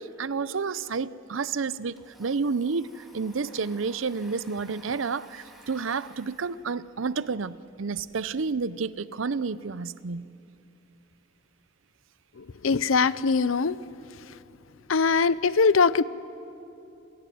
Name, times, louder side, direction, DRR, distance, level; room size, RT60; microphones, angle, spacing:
voice 1, 0.0-10.2, right 4 dB, 70° right, 0.6 m, -30 dB
Domestic sounds home sounds, 1.6-8.0, equal, ahead, 3.1 m, -55 dB
voice 2, 12.4-13.8 14.3-14.4 14.9-16.0, left 4 dB, 80° left, 0.7 m, -22 dB
28.5 x 16.5 x 9.4 m
head